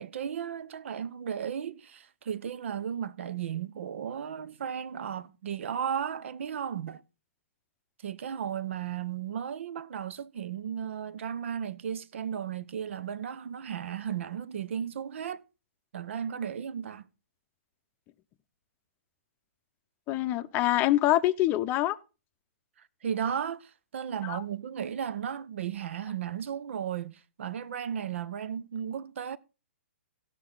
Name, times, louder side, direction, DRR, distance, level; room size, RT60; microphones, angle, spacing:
voice 1, 0.0-7.0 8.0-15.4 15.9-17.1 23.0-29.4, right 8 dB, 65° right, 0.7 m, -35 dB
voice 2, 20.1-22.0 24.2-24.4, left 15 dB, 25° left, 0.6 m, -25 dB
16.0 x 6.0 x 3.9 m
hypercardioid pair, 135°, 7 cm